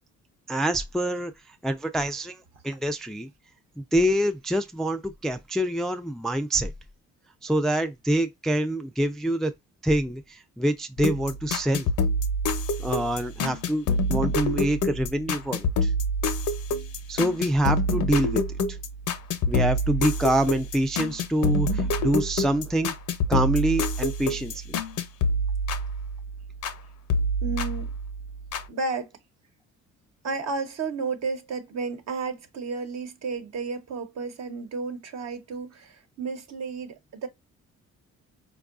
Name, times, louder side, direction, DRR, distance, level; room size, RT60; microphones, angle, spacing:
voice 1, 0.5-1.3 1.6-2.4 2.6-3.3 3.9-6.7 7.4-9.5 9.8-11.9 12.8-15.9 17.1-18.4 19.5-22.9 23.3-24.6, right 1 dB, ahead, 0.3 m, -26 dB
sound 1, 11.0-26.8 27.1-28.7, left 1 dB, 75° left, 0.7 m, -27 dB
voice 2, 27.4-27.9 28.7-29.1 30.2-37.3, right 4 dB, 60° right, 1.1 m, -32 dB
4.5 x 2.4 x 2.4 m
cardioid pair, 90°, 30 cm